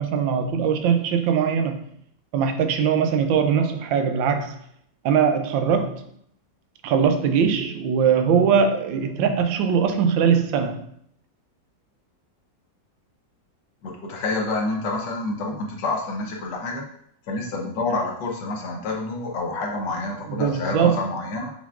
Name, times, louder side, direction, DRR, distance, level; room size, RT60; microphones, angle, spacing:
voice 1, 0.0-1.8 2.3-4.6 5.0-6.1 6.8-10.9 20.3-21.0, right 7 dB, 90° right, 1.3 m, -21 dB
voice 2, 13.8-16.8 17.3-21.5, left 2 dB, 70° left, 1.5 m, -28 dB
5.9 x 3.5 x 2.4 m
omnidirectional pair, 2.0 m